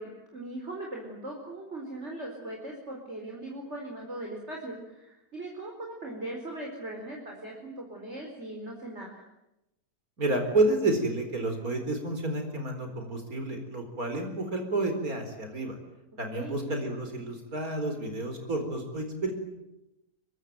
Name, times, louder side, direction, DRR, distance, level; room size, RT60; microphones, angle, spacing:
voice 1, 0.0-9.2 16.3-16.6, right 1 dB, 45° right, 1 dB, 4.9 m, -39 dB
voice 2, 10.2-15.8 16.2-19.3, right 2 dB, 70° right, 5 dB, 4.8 m, -30 dB
25.0 x 24.0 x 9.1 m, 0.90 s
omnidirectional pair, 1.6 m